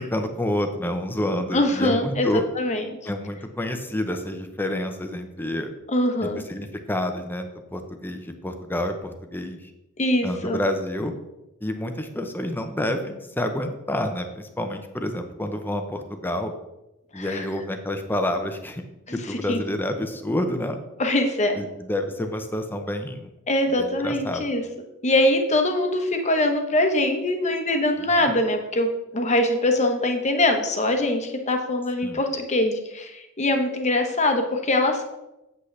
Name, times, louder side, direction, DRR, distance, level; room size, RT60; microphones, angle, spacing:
voice 1, 0.0-2.4 3.0-5.7 6.2-9.7 10.2-11.1 11.6-16.5 17.1-18.8 19.1-20.8 21.5-23.3 23.8-24.4 28.0-28.1 32.0-32.2, left 1 dB, 10° left, 6 dB, 0.7 m, -28 dB
voice 2, 1.5-2.3 2.6-2.8 5.9-6.4 10.0-10.6 17.1-17.4 19.1-19.2 19.5-19.6 21.0-21.6 23.5-24.6 25.0-35.0, left 1 dB, 30° left, 5 dB, 1.0 m, -23 dB
8.1 x 8.0 x 3.3 m, 0.93 s
head